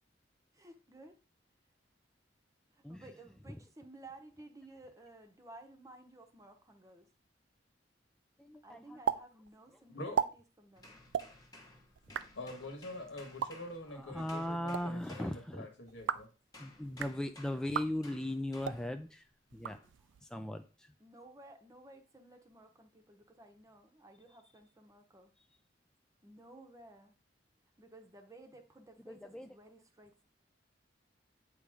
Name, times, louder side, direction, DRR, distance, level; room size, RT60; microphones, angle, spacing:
voice 1, 0.5-1.2 2.7-7.1 8.6-11.0 21.0-25.3 26.2-27.1 27.8-30.2, right 2 dB, 20° right, 5 dB, 0.9 m, -55 dB
voice 2, 2.8-3.6 8.4-9.0 13.9-15.7 16.6-19.2 19.5-19.8 20.2-20.9 29.1-29.5, left 1 dB, 5° left, 7 dB, 0.3 m, -39 dB
sound 1, 9.1-9.2 9.5-9.6 10.0-10.3 11.1-11.3 12.0-12.3 13.2-13.5 14.5-14.8 15.9-16.3 16.8-17.2 17.7-17.9 18.6-18.8 19.5-20.2, right 7 dB, 80° right, 0.4 m, -35 dB
sound 2, 10.8-16.0 16.5-19.0 19.7-20.0, left 2 dB, 20° left, 1.2 m, -57 dB
voice 3, 12.4-16.3, left 1 dB, 80° left, 3 dB, 1.7 m, -45 dB
8.4 x 3.1 x 4.9 m, 0.33 s
head